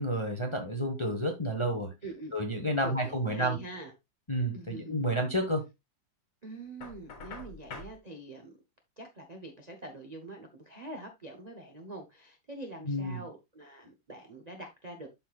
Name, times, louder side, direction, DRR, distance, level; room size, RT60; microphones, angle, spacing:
voice 1, 0.0-1.9 2.3-3.6 4.3-5.6 12.9-13.2, right 1 dB, 20° left, 0.8 m, -30 dB
voice 2, 2.0-2.4 2.8-3.9 4.5-5.0 6.4-8.6 9.0-15.1, right 2 dB, 35° right, 0.7 m, -44 dB
Knock, 6.8-8.0, left 3 dB, 70° left, 2.5 m, -44 dB
12.0 x 4.4 x 2.4 m
omnidirectional pair, 2.1 m